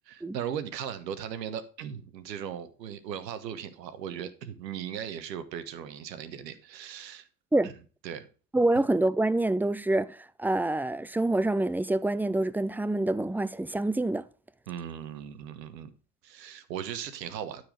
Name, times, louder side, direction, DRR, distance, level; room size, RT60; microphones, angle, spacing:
voice 1, 0.0-7.3 7.6-7.7 8.0-8.3 14.7-15.9 16.2-17.6, right 9 dB, 80° right, 1.4 m, -38 dB
voice 2, 8.5-14.2, right 2 dB, 5° right, 0.4 m, -26 dB
12.5 x 4.9 x 5.1 m
hypercardioid pair, 65°, 49 cm